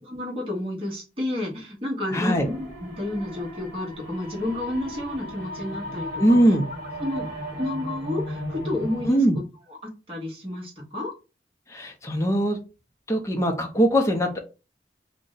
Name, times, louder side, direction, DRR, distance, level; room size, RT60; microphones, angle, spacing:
voice 1, 0.1-6.5 7.0-7.3 7.6-11.1, left 1 dB, 30° right, -3 dB, 1.0 m, -31 dB
voice 2, 2.1-2.5 6.2-6.6 9.1-9.4 11.7-12.6 13.1-14.4, right 1 dB, 15° left, 3 dB, 0.5 m, -21 dB
sound 1, 2.3-9.1, equal, 50° right, 1.2 m, -36 dB
2.6 x 2.0 x 3.8 m, 0.31 s
head